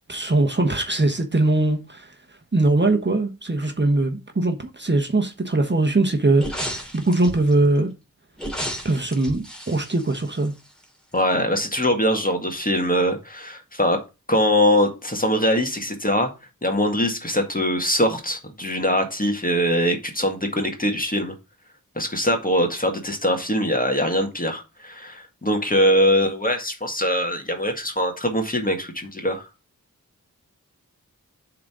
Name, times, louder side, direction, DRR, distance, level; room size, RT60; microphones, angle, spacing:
voice 1, 0.1-2.1 2.5-7.9 8.8-10.5, right 2 dB, 30° right, 1.2 m, -21 dB
sound 1, 6.4-7.5 8.4-10.8 11.2-11.3, equal, ahead, 2.7 m, -33 dB
voice 2, 11.1-14.0 14.3-16.3 16.6-21.3 22.0-29.4, equal, 25° left, 1.9 m, -22 dB
7.3 x 4.0 x 6.1 m
wide cardioid pair, 60°, 34 cm